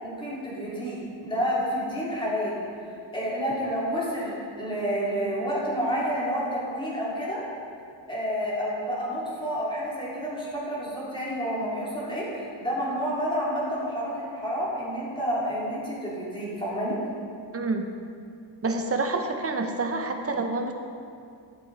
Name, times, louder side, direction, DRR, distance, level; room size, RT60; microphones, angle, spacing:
voice 1, 0.0-2.6 3.1-7.4 8.1-17.0, equal, 10° left, -7 dB, 2.9 m, -29 dB
voice 2, 17.5-17.9 18.6-20.7, right 3 dB, 30° right, 5 dB, 0.8 m, -27 dB
12.5 x 7.6 x 4.0 m, 2.4 s
wide cardioid pair, 140°, 45 cm